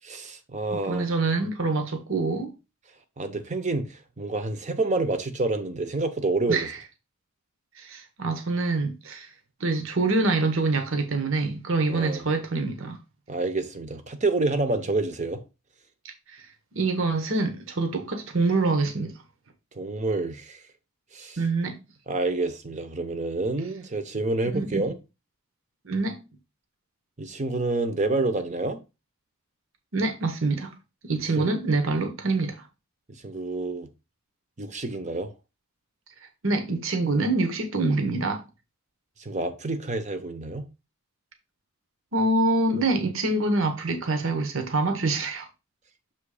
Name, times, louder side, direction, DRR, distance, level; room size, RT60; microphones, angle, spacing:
voice 1, 0.1-1.1 3.2-6.7 11.9-12.2 13.3-15.4 19.7-20.6 21.1-21.4 22.1-24.9 27.2-28.8 31.4-31.5 33.1-33.9 34.6-35.3 39.2-40.7, right 2 dB, 35° right, 0.8 m, -28 dB
voice 2, 0.7-2.5 6.5-6.8 7.8-9.3 9.6-13.0 16.0-16.5 16.7-19.1 21.4-21.8 24.5-24.9 25.8-26.2 29.9-30.7 31.0-32.6 36.4-38.4 42.1-45.5, right 3 dB, 60° right, 1.0 m, -25 dB
7.0 x 3.1 x 4.9 m
head